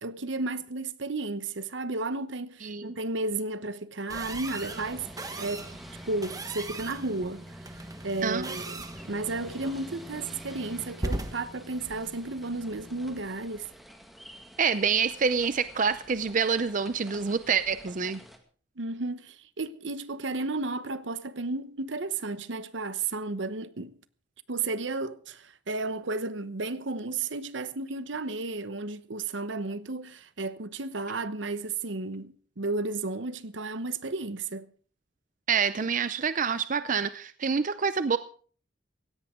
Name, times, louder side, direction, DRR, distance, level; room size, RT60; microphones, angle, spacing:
voice 1, 0.0-5.1 5.4-5.7 6.1-13.7 18.8-23.9 24.5-34.7, right 3 dB, 75° right, 1.0 m, -33 dB
voice 2, 2.6-3.0 8.2-8.5 14.6-18.2 35.5-38.2, right 6 dB, 45° right, 0.6 m, -27 dB
sound 1, 4.1-13.2, right 1 dB, 20° right, 1.3 m, -39 dB
sound 2, 4.6-18.4, equal, ahead, 1.9 m, -50 dB
17.0 x 16.5 x 3.7 m
head